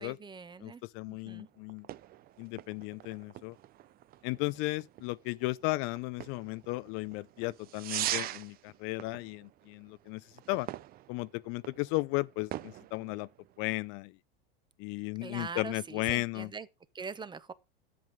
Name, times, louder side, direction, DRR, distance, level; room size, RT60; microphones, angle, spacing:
voice 1, 0.0-0.8 1.1-1.5 15.2-16.7 16.9-17.5, right 5 dB, 15° right, 1.0 m, -42 dB
voice 2, 0.6-1.9 2.4-3.6 4.2-10.7 11.1-13.3 13.6-14.2 14.8-16.5, left 22 dB, 45° left, 0.5 m, -35 dB
sound 1, 1.3-13.9, right 14 dB, 30° right, 0.5 m, -43 dB
11.0 x 7.6 x 5.1 m
hypercardioid pair, 110°, 30 cm